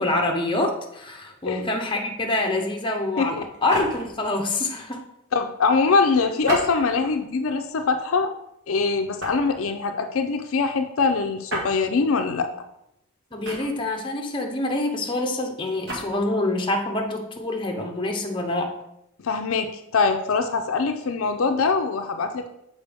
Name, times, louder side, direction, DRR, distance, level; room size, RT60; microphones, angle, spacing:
voice 1, 0.0-5.0 13.3-18.7, left 2 dB, 25° left, 2 dB, 0.7 m, -26 dB
sound 1, 3.5-4.2 6.4-7.2 7.8-8.0 9.2-9.6 11.5-11.7 13.4-14.0 15.7-16.1, right 1 dB, 55° right, 1.5 m, -31 dB
voice 2, 5.3-8.3 8.7-12.5 19.2-22.5, left 4 dB, 70° left, 6 dB, 0.5 m, -23 dB
6.6 x 4.7 x 3.5 m, 0.81 s
head